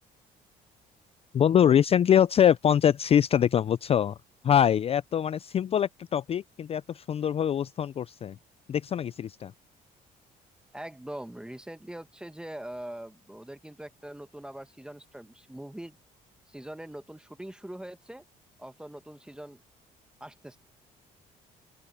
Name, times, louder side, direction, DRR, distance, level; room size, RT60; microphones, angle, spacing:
voice 1, 1.3-4.2 4.4-8.4 8.7-9.5, left 9 dB, 35° left, 0.4 m, -24 dB
voice 2, 10.7-16.0 16.5-18.2 18.6-19.6 20.2-20.6, right 1 dB, 5° right, 1.2 m, -42 dB
open air
cardioid pair, 90°, 16 cm